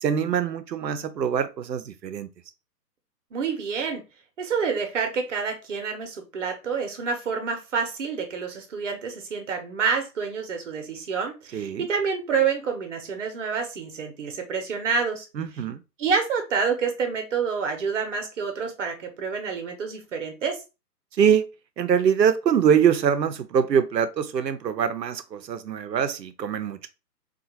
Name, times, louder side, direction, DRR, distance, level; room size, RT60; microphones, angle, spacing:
voice 1, 0.0-2.3 11.5-11.9 15.3-15.8 21.2-21.4 21.8-26.9, right 8 dB, 85° right, 0.6 m, -23 dB
voice 2, 3.3-4.0 4.4-15.3 16.0-20.6, right 5 dB, 45° right, 0.8 m, -28 dB
2.7 x 2.3 x 2.8 m
figure-of-eight pair, 135°, 49 cm